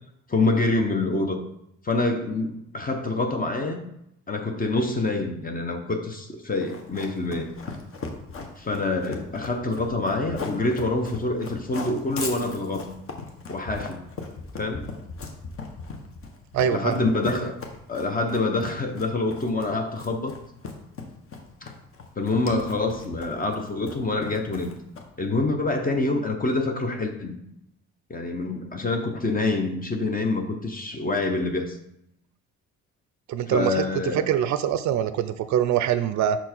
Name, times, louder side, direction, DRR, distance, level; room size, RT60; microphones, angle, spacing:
voice 1, 0.3-1.4 1.8-3.8 4.3-7.5 8.6-12.9 13.5-14.0 14.6-14.9 16.7-17.6 17.9-20.4 21.6-21.7 22.2-24.7 25.2-27.4 28.1-31.8 33.5-34.2, left 2 dB, 30° left, 4 dB, 0.8 m, -26 dB
Run, 6.6-25.3, left 4 dB, 45° left, 1.1 m, -38 dB
voice 2, 16.5-16.9 33.3-33.9 34.1-36.4, right 10 dB, 70° right, 12 dB, 0.4 m, -23 dB
5.6 x 4.4 x 4.4 m, 0.77 s
cardioid pair, 90°, 30 cm